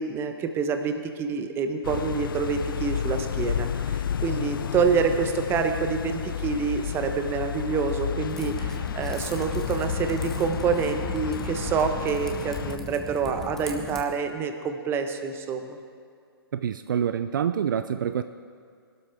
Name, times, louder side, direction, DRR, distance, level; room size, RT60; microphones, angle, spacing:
voice 1, 0.0-15.8, right 5 dB, 20° right, 6 dB, 1.0 m, -27 dB
sound 1, 1.8-12.8, left 8 dB, 60° left, 0.4 m, -31 dB
Typing, 8.3-14.0, left 1 dB, 5° left, 1.1 m, -37 dB
voice 2, 16.5-18.2, right 8 dB, 55° right, 10 dB, 0.4 m, -26 dB
21.0 x 12.5 x 3.5 m, 2.2 s
figure-of-eight pair, 125°, 13 cm